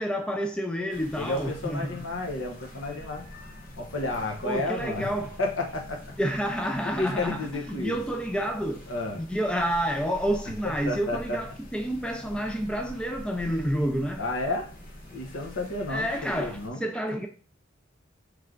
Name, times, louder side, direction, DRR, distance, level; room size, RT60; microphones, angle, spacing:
voice 1, 0.0-2.0 4.4-5.3 6.2-8.8 9.2-14.2 15.9-17.3, equal, 5° left, 0.3 m, -29 dB
sound 1, 0.9-16.7, left 1 dB, 45° left, 1.1 m, -45 dB
voice 2, 1.1-3.2 3.8-5.1 5.4-6.0 6.8-8.0 8.9-9.2 10.6-11.4 14.2-14.7 15.1-16.8, left 2 dB, 70° left, 0.9 m, -31 dB
3.3 x 3.2 x 3.7 m
head